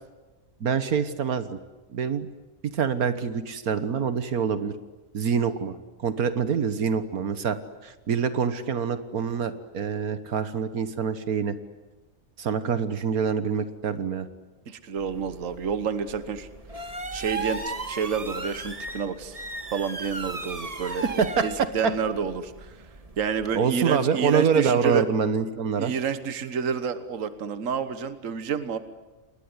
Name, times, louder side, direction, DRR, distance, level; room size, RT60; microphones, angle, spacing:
voice 1, 0.6-1.6 1.9-2.3 2.6-4.7 5.1-7.6 7.8-11.6 12.4-14.3 21.0-21.9 23.5-25.9, right 6 dB, 80° right, 12 dB, 1.8 m, -26 dB
voice 2, 14.7-16.5 17.1-19.4 19.7-22.8 23.2-25.1 25.8-28.8, right 6 dB, 60° right, 12 dB, 1.6 m, -29 dB
sound 1, 15.0-23.6, right 2 dB, 25° right, 1.8 m, -37 dB
28.5 x 21.0 x 9.7 m, 1.2 s
omnidirectional pair, 1.5 m